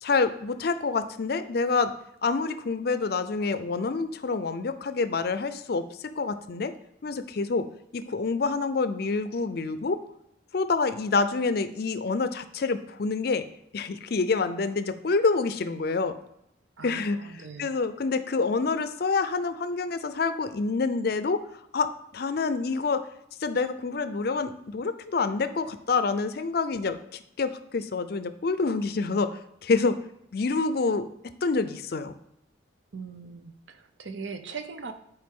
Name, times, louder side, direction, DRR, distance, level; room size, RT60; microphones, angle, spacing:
voice 1, 0.0-1.9 2.2-6.7 7.0-7.7 7.9-10.0 10.5-13.4 13.7-16.2 16.8-17.2 17.6-21.4 21.7-23.1 23.4-30.0 30.3-31.1 31.4-32.1, left 4 dB, 55° left, 11 dB, 0.5 m, -27 dB
voice 2, 16.8-17.7 32.9-34.9, right 5 dB, 75° right, 8 dB, 0.7 m, -40 dB
10.5 x 4.6 x 3.7 m, 0.79 s
head